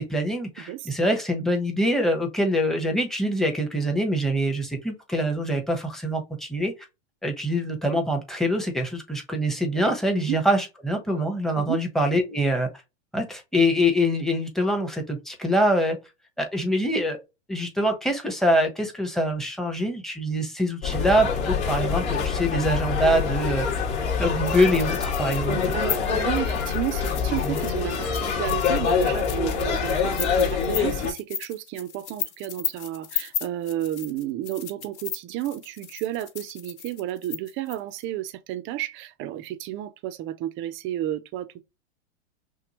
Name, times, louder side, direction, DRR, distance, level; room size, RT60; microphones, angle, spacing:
voice 1, 0.0-6.7 7.2-12.7 13.1-16.0 16.4-17.2 17.5-23.8 24.2-25.8, equal, ahead, 1.1 m, -24 dB
voice 2, 0.7-1.2 9.7-9.9 10.2-10.4 11.6-11.8 25.5-41.6, right 13 dB, 35° right, 0.6 m, -32 dB
sound 1, 20.8-31.1, left 6 dB, 45° left, 2.4 m, -25 dB
sound 2, 24.5-38.0, left 9 dB, 80° left, 1.2 m, -35 dB
6.0 x 2.3 x 3.0 m
supercardioid pair, 130°, 34 cm